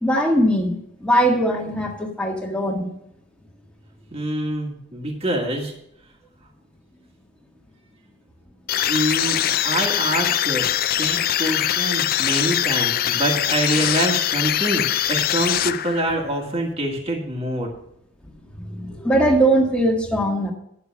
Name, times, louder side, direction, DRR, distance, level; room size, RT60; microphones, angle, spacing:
voice 1, 0.0-2.9 18.5-20.5, right 1 dB, 5° left, 0 dB, 1.7 m, -20 dB
voice 2, 4.1-5.7 8.9-10.6 11.0-17.7, right 1 dB, 30° right, 0 dB, 1.6 m, -25 dB
sound 1, 8.7-16.2, left 11 dB, 45° left, 0.4 m, -22 dB
10.5 x 6.7 x 5.9 m, 0.74 s
head